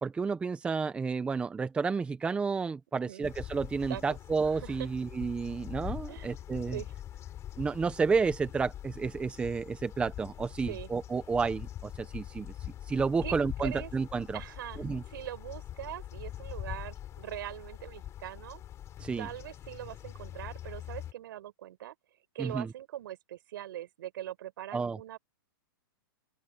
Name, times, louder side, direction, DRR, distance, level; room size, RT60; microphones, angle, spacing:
voice 1, 0.0-6.8 7.6-12.5 12.9-14.4 14.8-15.0 19.0-19.3 22.4-22.7 24.7-25.0, right 5 dB, 10° right, 0.9 m, -31 dB
voice 2, 2.9-3.3 3.9-4.2 4.5-4.9 6.1-6.4 6.7-6.9 10.7-10.9 13.2-13.3 13.6-13.9 14.3-18.6 19.2-22.0 22.3-25.2, right 13 dB, 65° right, 5.6 m, -42 dB
sound 1, 3.2-21.1, left 11 dB, 25° left, 6.8 m, -43 dB
open air
hypercardioid pair, 150°, 12 cm